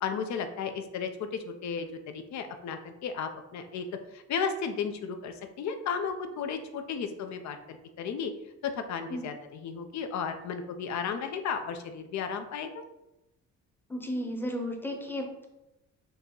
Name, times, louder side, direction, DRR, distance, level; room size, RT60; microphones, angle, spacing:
voice 1, 0.0-3.9 4.1-8.3 8.6-12.8, left 6 dB, 65° left, 7 dB, 0.6 m, -34 dB
voice 2, 13.9-15.5, equal, 5° left, 3 dB, 0.7 m, -34 dB
4.0 x 2.9 x 3.8 m, 0.94 s
cardioid pair, 90°, 30 cm